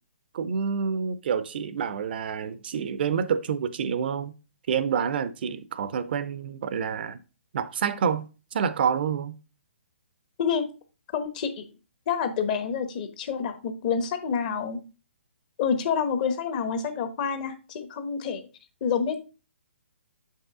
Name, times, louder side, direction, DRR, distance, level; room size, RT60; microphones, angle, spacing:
voice 1, 0.3-4.3 4.7-7.2 7.5-8.3 8.5-9.3, right 7 dB, 50° right, 0.6 m, -28 dB
voice 2, 11.1-11.6 12.1-14.8 15.6-18.5 18.8-19.2, left 6 dB, 40° left, 1.1 m, -28 dB
7.2 x 5.5 x 3.6 m
hypercardioid pair, 140°, 7 cm